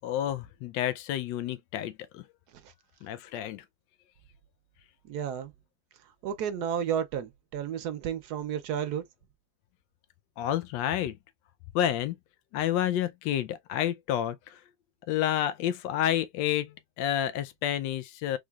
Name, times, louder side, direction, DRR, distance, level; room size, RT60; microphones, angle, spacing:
voice 1, 0.0-2.3 3.0-3.6 10.4-11.2 11.7-12.2 12.5-14.6 15.1-18.4, left 11 dB, 90° left, 1.3 m, -29 dB
voice 2, 5.1-5.5 6.2-9.0, right 8 dB, 70° right, 1.1 m, -32 dB
3.8 x 3.2 x 2.3 m
omnidirectional pair, 1.9 m